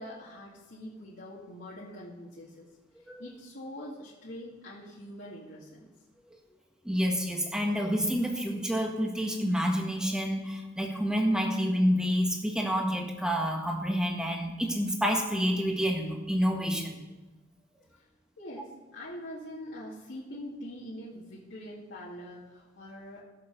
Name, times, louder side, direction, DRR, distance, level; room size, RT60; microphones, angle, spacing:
voice 1, 0.0-2.7 3.2-5.9 18.0-18.1 18.4-23.2, left 1 dB, 70° left, -7 dB, 2.1 m, -44 dB
voice 2, 6.8-17.0, equal, 5° right, 1 dB, 1.6 m, -28 dB
17.5 x 6.8 x 5.3 m, 1.2 s
head